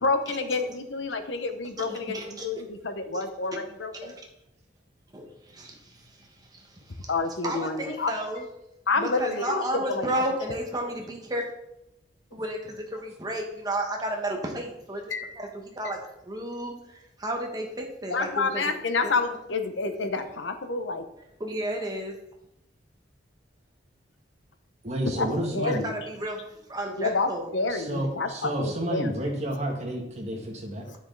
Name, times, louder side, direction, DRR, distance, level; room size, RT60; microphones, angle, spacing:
voice 1, 0.0-4.1 7.1-8.1 8.9-10.1 15.1-15.3 15.8-15.9 18.1-21.0 25.1-25.9 27.0-29.2 30.9-31.0, left 3 dB, 80° left, 8 dB, 0.9 m, -29 dB
voice 2, 1.9-2.5 3.1-3.2 4.0-4.2 5.1-7.1 7.4-8.4 9.0-11.5 12.3-15.0 15.4-18.7 19.0-19.1 21.4-22.1 25.3-27.5, right 1 dB, 20° right, 1 dB, 1.4 m, -33 dB
voice 3, 24.8-25.8 27.7-30.8, right 1 dB, 35° right, 0 dB, 1.8 m, -30 dB
9.8 x 6.3 x 3.9 m, 0.86 s
head